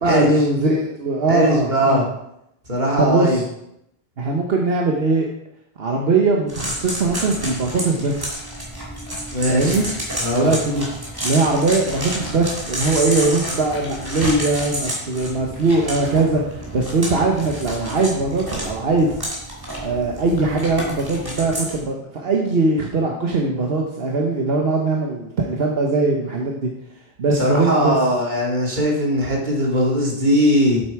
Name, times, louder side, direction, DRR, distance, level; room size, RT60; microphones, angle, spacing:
voice 1, 0.0-2.0 3.0-3.4 4.2-5.3 5.8-8.4 9.5-9.9 10.4-10.9 11.2-19.2 19.8-26.7 27.2-28.0, right 3 dB, 75° right, 0 dB, 1.3 m, -20 dB
voice 2, 1.3-2.0 2.7-3.4 9.3-9.8 10.2-10.5 27.4-30.8, equal, 50° right, -2 dB, 2.3 m, -19 dB
sound 1, 6.5-21.8, equal, 20° right, 2.6 m, -30 dB
8.0 x 7.6 x 4.7 m, 0.79 s
omnidirectional pair, 1.0 m